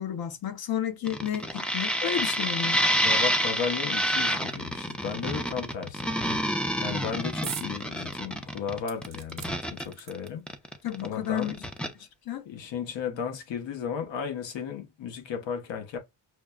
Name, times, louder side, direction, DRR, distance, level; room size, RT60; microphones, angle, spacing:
voice 1, 0.0-2.8 10.8-11.5 12.0-12.5, left 10 dB, 55° left, 0.8 m, -32 dB
sound 1, 1.1-11.1 11.4-11.9, equal, ahead, 0.5 m, -28 dB
voice 2, 3.0-6.1 6.8-10.5 11.0-11.5 12.4-16.0, left 7 dB, 75° left, 1.1 m, -34 dB
sound 2, 7.4-7.7 8.1-8.2 8.9-10.5 11.4-11.5 11.8-11.9, right 9 dB, 60° right, 0.8 m, -41 dB
6.2 x 2.1 x 2.3 m
cardioid pair, 105°, 44 cm